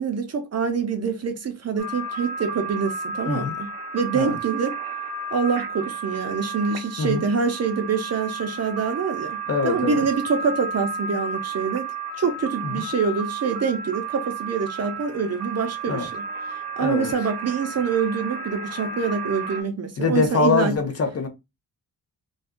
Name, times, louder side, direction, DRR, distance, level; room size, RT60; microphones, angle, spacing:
voice 1, 0.0-3.7 3.9-4.7 5.3-9.4 9.6-11.9 12.2-20.7, right 5 dB, 40° right, 0.6 m, -25 dB
sound 1, 1.8-19.6, right 4 dB, 75° right, 0.8 m, -33 dB
voice 2, 9.5-10.1 12.6-12.8 15.9-16.1 16.8-17.1 20.0-21.3, left 5 dB, 40° left, 0.7 m, -23 dB
2.6 x 2.3 x 3.5 m
wide cardioid pair, 145°, 38 cm